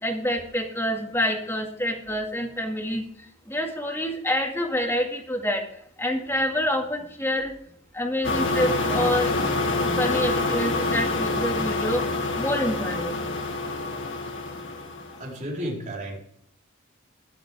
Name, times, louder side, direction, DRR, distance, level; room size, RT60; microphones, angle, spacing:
voice 1, 0.0-3.0 3.5-5.7 6.0-7.5 7.9-9.3 9.8-12.1 12.4-13.2, left 1 dB, 10° left, 3 dB, 2.0 m, -27 dB
sound 1, 8.2-15.3, left 2 dB, 60° left, 2.1 m, -26 dB
voice 2, 15.2-16.2, equal, 35° right, -2 dB, 4.2 m, -32 dB
21.0 x 7.9 x 3.5 m, 0.67 s
head